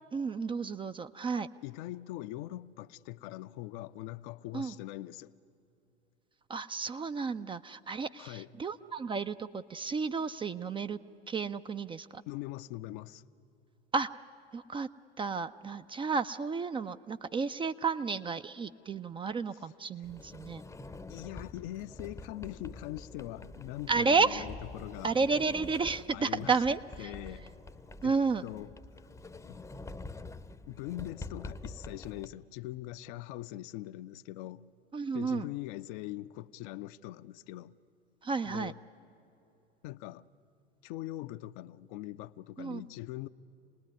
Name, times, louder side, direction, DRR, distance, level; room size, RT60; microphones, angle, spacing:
voice 1, 0.1-1.5 4.5-4.7 6.5-11.0 11.3-12.2 13.9-14.1 14.5-14.9 15.2-20.6 23.9-24.5 25.0-27.1 28.0-28.4 34.9-35.5 38.2-38.7 42.6-42.8, right 4 dB, 15° right, 0.5 m, -32 dB
voice 2, 1.6-5.3 8.2-8.5 12.3-13.2 21.1-25.1 26.1-26.6 27.0-27.5 28.0-28.1 28.4-28.7 29.4-29.6 30.7-34.7 35.1-37.7 38.4-38.8 39.8-40.2 40.8-43.3, left 15 dB, 50° left, 0.6 m, -42 dB
Sliding door, 20.0-32.3, left 2 dB, 10° left, 0.8 m, -46 dB
27.0 x 19.5 x 9.5 m
figure-of-eight pair, 80°, 32 cm